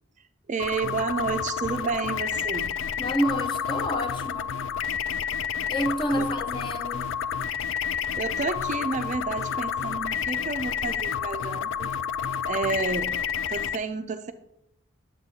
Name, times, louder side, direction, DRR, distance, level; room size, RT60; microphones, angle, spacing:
voice 1, 0.5-2.7 6.2-6.3 8.1-11.9 12.4-13.2 13.5-14.3, right 4 dB, 35° right, 9 dB, 0.3 m, -30 dB
sound 1, 0.6-13.8, left 7 dB, 70° left, 0.3 m, -30 dB
voice 2, 3.0-4.5 5.7-7.1, equal, 25° left, 6 dB, 0.6 m, -28 dB
9.5 x 7.5 x 2.7 m, 0.80 s
head